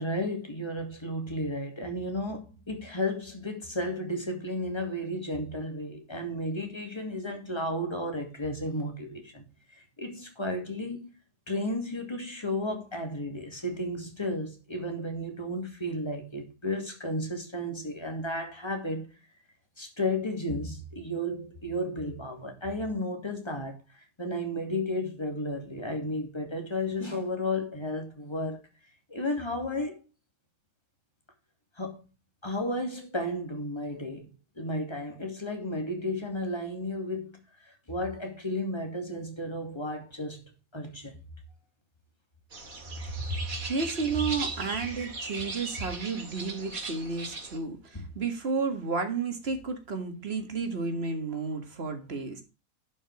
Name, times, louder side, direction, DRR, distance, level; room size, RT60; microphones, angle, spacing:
voice 1, 0.0-9.5 9.7-11.1 11.5-19.1 19.8-28.6 29.1-30.0 31.8-32.0 32.4-34.3 34.6-41.1 47.9-48.0, left 1 dB, 20° left, 2.5 m, -33 dB
sound 1, 42.5-47.6, right 3 dB, 80° right, 2.7 m, -38 dB
voice 2, 43.2-52.4, right 4 dB, 45° right, 2.0 m, -32 dB
11.5 x 5.4 x 4.8 m
omnidirectional pair, 1.4 m